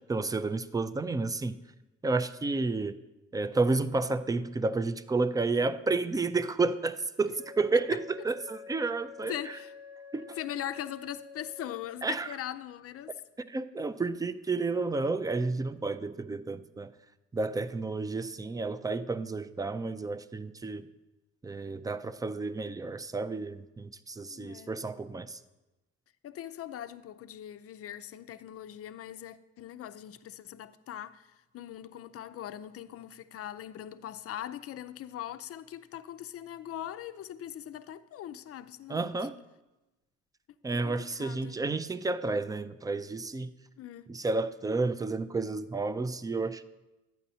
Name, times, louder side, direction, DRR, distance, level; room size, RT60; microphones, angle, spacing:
voice 1, 0.1-1.5 2.0-2.9 3.3-8.0 8.2-9.4 10.1-10.4 12.0-12.3 13.5-16.9 17.3-20.9 21.4-25.4 38.9-39.3 40.6-43.5 44.1-46.6, right 3 dB, 15° right, 0.3 m, -31 dB
Wind instrument woodwind instrument, 7.3-12.0, left 5 dB, 65° right, 1.9 m, -48 dB
voice 2, 9.3-9.7 10.4-13.1 24.2-24.7 26.2-39.1 40.7-41.6 43.8-44.1, left 11 dB, 50° left, 0.5 m, -41 dB
11.5 x 9.1 x 2.7 m
cardioid pair, 90°, 30 cm